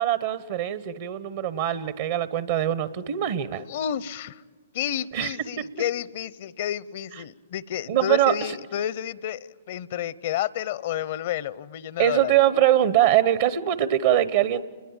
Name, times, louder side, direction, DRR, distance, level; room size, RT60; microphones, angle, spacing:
voice 1, 0.0-3.6 5.1-5.3 7.9-8.3 12.0-14.7, right 12 dB, 55° right, 15 dB, 0.9 m, -22 dB
voice 2, 3.7-4.4 4.7-12.4, left 10 dB, 55° left, 20 dB, 0.7 m, -30 dB
29.5 x 20.5 x 8.9 m, 1.5 s
hypercardioid pair, 120°, 0 cm